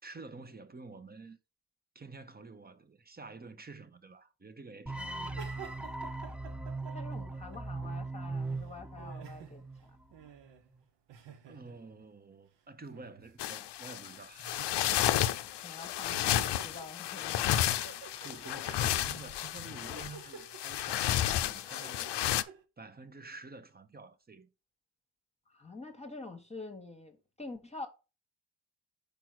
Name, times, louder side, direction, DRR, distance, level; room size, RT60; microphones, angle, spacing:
voice 1, 0.0-1.4 1.9-5.4 11.5-14.5 18.1-22.3 22.8-24.5, right 3 dB, 25° right, 0.7 m, -49 dB
sound 1, 4.9-10.0, right 3 dB, 5° right, 0.4 m, -39 dB
voice 2, 5.0-5.4 6.9-9.6 15.6-17.4 25.5-27.9, left 3 dB, 15° left, 1.2 m, -46 dB
sound 2, 5.4-8.0 8.3-12.1 12.9-13.4 13.8-13.9 14.4-15.2 15.5-15.7 16.0-17.5 17.8-22.6, right 7 dB, 90° right, 0.9 m, -52 dB
sound 3, 13.4-22.4, left 12 dB, 75° left, 0.6 m, -32 dB
5.0 x 4.5 x 6.0 m
cardioid pair, 100°, 41 cm